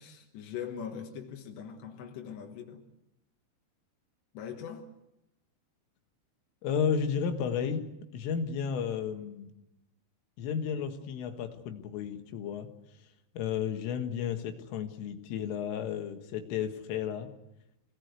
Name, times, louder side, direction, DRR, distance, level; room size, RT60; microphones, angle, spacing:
voice 1, 0.0-2.9 4.3-4.9, left 8 dB, 70° left, 2 dB, 3.5 m, -41 dB
voice 2, 6.6-7.9 8.1-9.5 10.4-12.7 13.0-13.1 13.4-17.3, left 7 dB, 90° left, 6 dB, 4.2 m, -33 dB
26.0 x 19.0 x 8.2 m, 0.90 s
omnidirectional pair, 5.6 m